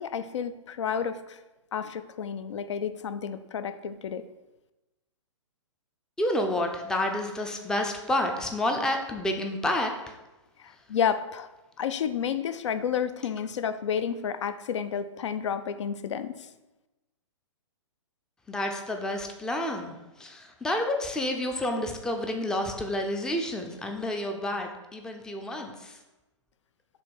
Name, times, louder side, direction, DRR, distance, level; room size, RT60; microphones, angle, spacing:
voice 1, 0.0-1.4 1.7-4.3 10.6-11.5 11.8-16.5, left 7 dB, 65° left, 12 dB, 0.5 m, -31 dB
voice 2, 6.2-10.2 10.7-10.8 18.5-26.0, left 1 dB, 5° left, 4 dB, 0.4 m, -30 dB
7.0 x 2.7 x 5.2 m, 1.0 s
figure-of-eight pair, 120°, 16 cm